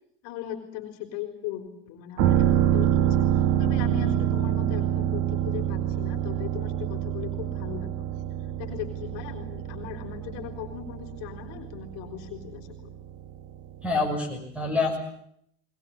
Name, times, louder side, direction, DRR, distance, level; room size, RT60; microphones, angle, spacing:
voice 1, 0.2-8.0 8.6-12.9, left 10 dB, 45° left, 6 dB, 4.3 m, -38 dB
sound 1, 2.2-13.7 14.1-14.2, right 11 dB, 40° right, 1.3 m, -26 dB
voice 2, 13.8-15.0, left 3 dB, 5° right, 6 dB, 6.1 m, -26 dB
21.5 x 21.0 x 9.9 m, 0.71 s
supercardioid pair, 150°, 37 cm